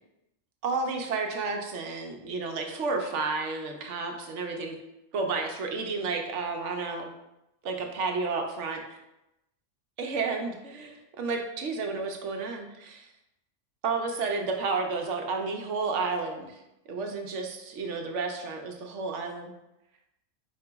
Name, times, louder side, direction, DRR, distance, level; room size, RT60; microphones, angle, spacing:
voice 1, 0.6-4.7 5.1-7.1 7.6-8.8 10.0-13.1 13.8-16.6 16.9-19.5, right 4 dB, 75° right, 3 dB, 1.0 m, -31 dB
4.7 x 2.9 x 3.4 m, 0.90 s
omnidirectional pair, 1.3 m